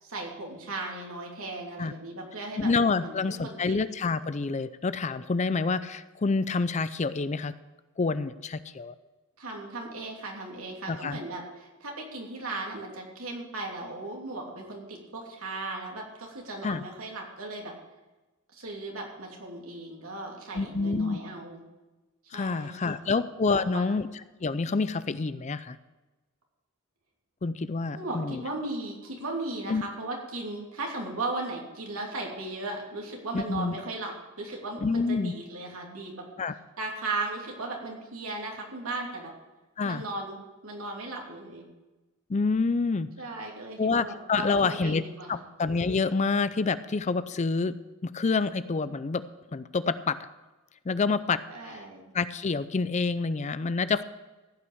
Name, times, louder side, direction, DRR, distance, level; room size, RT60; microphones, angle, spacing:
voice 1, 0.0-2.7 3.0-3.8 9.4-17.7 18.5-21.6 22.3-23.2 23.5-23.9 27.9-36.2 36.8-39.3 39.8-41.7 43.2-45.4 51.5-52.0, right 2 dB, 80° right, 0 dB, 2.9 m, -37 dB
voice 2, 2.6-7.5 8.0-8.9 10.9-11.2 16.6-16.8 20.5-21.2 22.3-24.1 24.4-25.8 27.4-28.4 29.7-29.8 33.3-33.8 34.8-35.3 36.4-36.6 39.8-40.0 42.3-43.1 43.8-45.0 45.3-47.8 48.0-49.2 49.5-50.2 50.9-51.8 52.1-54.0, left 4 dB, 35° left, 14 dB, 0.4 m, -27 dB
15.5 x 6.0 x 7.9 m, 1.1 s
head